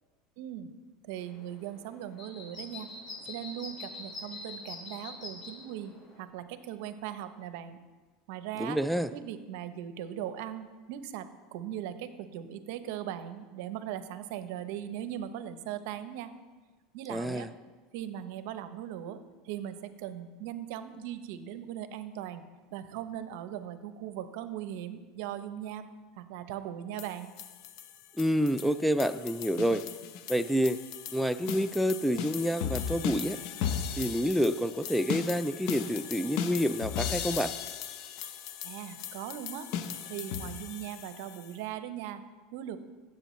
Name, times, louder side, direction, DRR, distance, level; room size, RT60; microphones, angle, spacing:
voice 1, 0.4-0.7 1.1-2.9 3.3-7.8 8.3-8.8 9.1-16.3 16.9-17.5 17.9-22.4 22.7-25.9 26.2-27.3 38.6-39.7 40.1-42.2 42.5-42.8, right 11 dB, 70° right, 11 dB, 0.7 m, -39 dB
sound 1, 1.1-6.2, left 2 dB, 40° left, 2.9 m, -45 dB
voice 2, 8.6-9.1 17.1-17.5 28.2-29.8 30.3-30.8 31.1-33.4 34.0-37.5, equal, ahead, 10 dB, 0.3 m, -28 dB
sound 2, 27.0-41.5, left 8 dB, 65° left, 0.7 m, -37 dB
15.5 x 7.8 x 3.1 m, 1.3 s
supercardioid pair, 115°, 0 cm